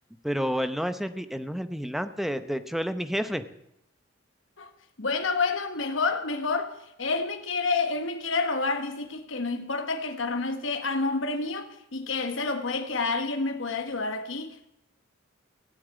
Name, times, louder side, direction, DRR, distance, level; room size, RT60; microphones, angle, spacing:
voice 1, 0.2-3.4, equal, ahead, 0.8 m, -30 dB
voice 2, 5.0-6.7 7.0-14.7, left 3 dB, 70° left, 1.4 m, -29 dB
16.0 x 8.5 x 8.9 m
head